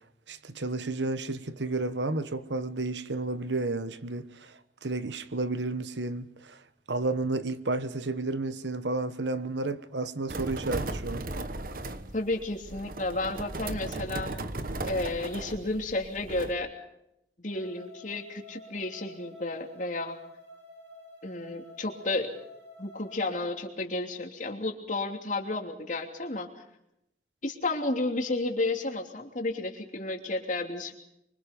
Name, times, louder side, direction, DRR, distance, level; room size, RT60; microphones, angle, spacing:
voice 1, 0.3-6.6 6.9-11.2, right 2 dB, 90° right, 1.3 m, -32 dB
sound 1, 10.3-16.5, right 2 dB, 50° right, 1.3 m, -36 dB
voice 2, 12.1-14.3 14.9-16.7 17.4-20.1 21.2-22.3 22.8-26.5 27.4-30.9, left 2 dB, 45° left, 3.0 m, -32 dB
sound 2, 17.5-23.5, left 1 dB, 75° right, 7.9 m, -50 dB
25.0 x 25.0 x 5.3 m
head